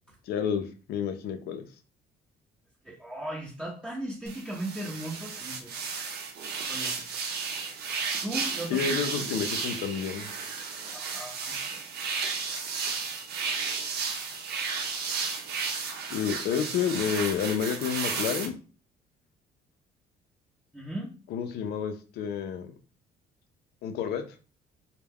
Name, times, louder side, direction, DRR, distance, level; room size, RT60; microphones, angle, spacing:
voice 1, 0.3-1.6 8.7-10.3 16.1-18.5 21.3-22.7 23.8-24.2, left 7 dB, 70° left, 8 dB, 0.5 m, -30 dB
voice 2, 2.8-5.8 6.6-7.1 8.2-8.9 10.9-11.8 20.7-21.1, right 1 dB, 5° right, -4 dB, 0.6 m, -37 dB
sound 1, 4.3-18.5, right 5 dB, 70° right, 0.7 m, -33 dB
2.2 x 2.1 x 3.4 m, 0.35 s
cardioid pair, 110°, 17 cm